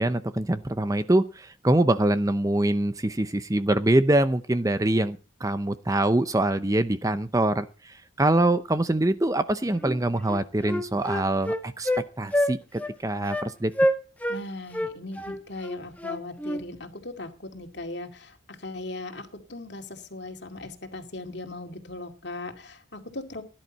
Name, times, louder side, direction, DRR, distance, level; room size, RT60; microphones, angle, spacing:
voice 1, 0.0-11.9 12.2-13.7, right 1 dB, 15° right, 11 dB, 0.6 m, -24 dB
Wind instrument woodwind instrument, 9.8-10.0 10.3-12.0 12.3-12.5 12.8-12.9 13.3-13.5 13.8-14.4 14.7-16.6, equal, 5° left, 1.1 m, -27 dB
voice 2, 14.3-23.4, left 2 dB, 55° left, 5 dB, 2.3 m, -38 dB
17.0 x 11.0 x 4.1 m, 0.33 s
head